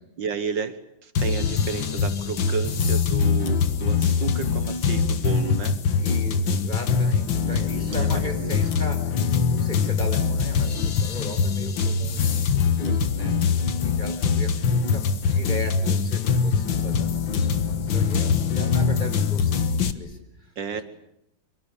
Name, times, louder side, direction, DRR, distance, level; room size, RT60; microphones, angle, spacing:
voice 1, 0.2-5.8 7.4-8.7 12.9-13.4 20.6-20.8, right 6 dB, 65° right, 11 dB, 2.0 m, -33 dB
sound 1, 1.2-19.9, left 5 dB, 70° left, 2.1 m, -23 dB
voice 2, 6.0-20.8, left 1 dB, 25° left, 6 dB, 5.0 m, -38 dB
26.0 x 24.0 x 8.4 m, 0.79 s
omnidirectional pair, 2.1 m